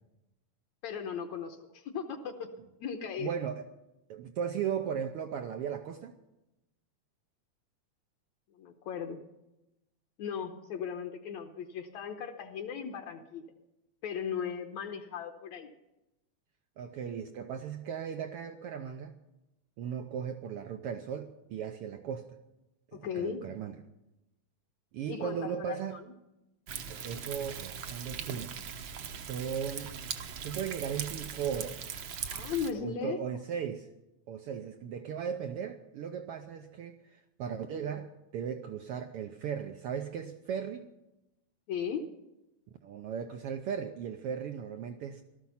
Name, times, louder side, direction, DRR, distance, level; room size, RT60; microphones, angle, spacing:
voice 1, 0.8-2.5 2.8-3.3 8.6-9.2 10.2-13.4 14.0-15.7 22.9-23.5 25.1-26.0 32.2-33.2 41.7-42.1, left 7 dB, 70° left, 4 dB, 2.1 m, -37 dB
voice 2, 3.2-3.6 4.1-6.2 16.8-19.1 19.8-22.4 22.9-23.8 24.9-26.0 26.9-28.5 29.1-30.0 30.4-31.9 32.7-33.9 34.3-40.9 42.8-45.2, right 8 dB, 85° right, 7 dB, 1.3 m, -37 dB
Thunder, 26.7-32.7, right 7 dB, 65° right, 1.3 m, -40 dB
18.0 x 13.0 x 5.6 m, 0.94 s
omnidirectional pair, 3.4 m